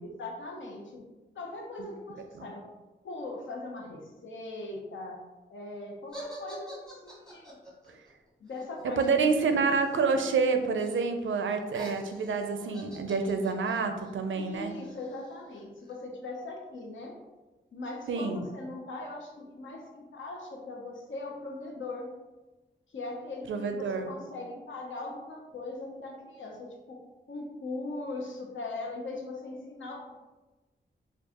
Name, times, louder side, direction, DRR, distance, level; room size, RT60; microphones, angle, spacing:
voice 1, 0.0-1.0 1.3-2.6 3.0-5.2 5.5-7.6 8.4-9.3 14.3-17.2 17.7-22.1 22.9-27.0 27.3-30.1, left 2 dB, 75° left, 0 dB, 0.7 m, -40 dB
sound 1, 6.1-10.1 10.4-11.0 11.3-15.9, right 1 dB, 5° left, 0.9 m, -48 dB
voice 2, 8.8-14.7 18.1-18.5 23.5-24.1, right 4 dB, 80° right, 6 dB, 0.4 m, -28 dB
4.5 x 2.3 x 2.8 m, 1.2 s
wide cardioid pair, 150°, 20 cm